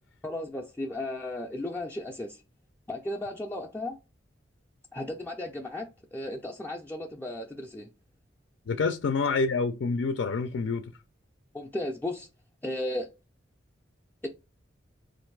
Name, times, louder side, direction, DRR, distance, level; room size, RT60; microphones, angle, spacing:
voice 1, 0.2-2.4 2.9-4.0 4.9-7.9 11.5-12.3 12.6-13.1 14.2-14.3, left 1 dB, 10° left, 0.4 m, -35 dB
voice 2, 8.7-10.8, left 4 dB, 75° left, 0.4 m, -27 dB
3.8 x 2.5 x 4.5 m
head